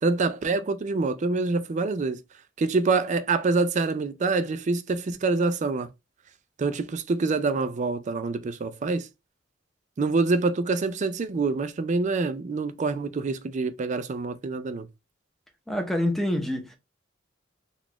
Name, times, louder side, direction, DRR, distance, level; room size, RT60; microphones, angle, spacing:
voice 1, 0.0-2.2 2.6-5.9 6.6-9.1 10.0-14.9, right 3 dB, 40° right, 0.4 m, -26 dB
voice 2, 15.7-16.8, left 1 dB, ahead, 0.7 m, -26 dB
3.9 x 2.4 x 2.9 m
head